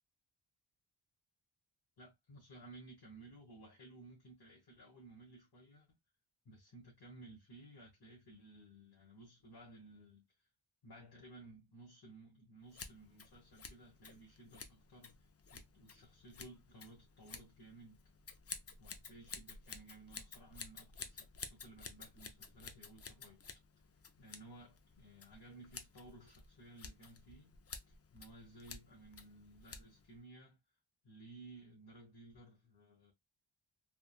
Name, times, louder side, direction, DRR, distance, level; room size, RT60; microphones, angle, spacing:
voice 1, 2.0-6.0 6.4-10.5 10.8-18.0 18.8-23.4 24.2-27.6 27.9-30.6 31.0-33.1, right 2 dB, 50° left, 1.2 m, -57 dB
Scissors, 12.7-30.2, left 5 dB, 35° left, 0.4 m, -53 dB
3.4 x 2.2 x 2.3 m
wide cardioid pair, 110°, 47 cm